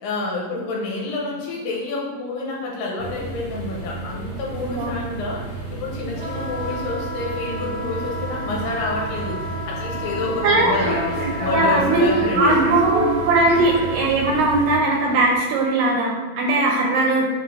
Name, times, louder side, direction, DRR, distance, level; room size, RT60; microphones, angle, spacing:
voice 1, 0.0-12.8, left 2 dB, 85° left, -2 dB, 2.4 m, -28 dB
sound 1, 3.0-14.6, right 3 dB, 65° left, 0.7 m, -33 dB
Wind instrument woodwind instrument, 6.1-14.0, equal, 50° right, 1.6 m, -32 dB
Human voice / Subway metro underground, 9.9-15.4, equal, 65° right, 1.9 m, -28 dB
voice 2, 11.5-12.1 12.4-17.3, right 2 dB, 85° right, -2 dB, 2.2 m, -19 dB
6.0 x 2.5 x 3.1 m, 1.3 s
omnidirectional pair, 3.9 m